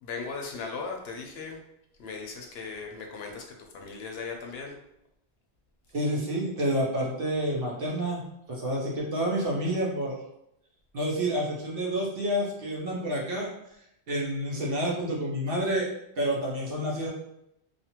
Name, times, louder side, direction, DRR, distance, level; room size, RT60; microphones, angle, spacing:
voice 1, 0.0-1.6 2.0-3.5 3.7-4.8, left 4 dB, 75° left, 2 dB, 0.8 m, -37 dB
voice 2, 5.9-8.2 8.5-10.2 10.9-13.5 14.1-15.9 16.2-17.1, right 1 dB, 65° right, -3 dB, 1.0 m, -29 dB
2.6 x 2.4 x 2.8 m, 0.80 s
omnidirectional pair, 1.1 m